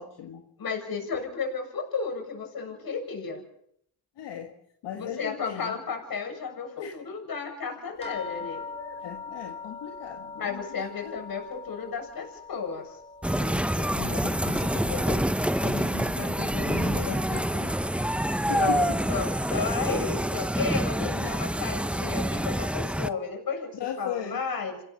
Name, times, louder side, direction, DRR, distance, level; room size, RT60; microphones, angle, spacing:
voice 1, 0.0-0.4 2.8-2.9 4.2-4.5 4.8-5.8 6.8-7.0 8.7-11.1 13.4-15.3 15.6-17.8 18.5-19.0 19.8-20.1 21.0-21.3 23.7-24.4, left 9 dB, 80° left, 2 dB, 2.1 m, -37 dB
voice 2, 0.6-3.4 5.0-8.6 10.3-13.0 18.5-24.8, left 5 dB, 55° left, 4 dB, 7.2 m, -33 dB
sound 1, 8.0-16.8 17.1-18.0 18.8-18.9 19.3-19.4, left 4 dB, 15° left, 2.9 m, -43 dB
sound 2, 13.2-23.1, right 1 dB, 5° right, 0.8 m, -27 dB
28.0 x 17.0 x 5.4 m, 0.70 s
cardioid pair, 70°, 41 cm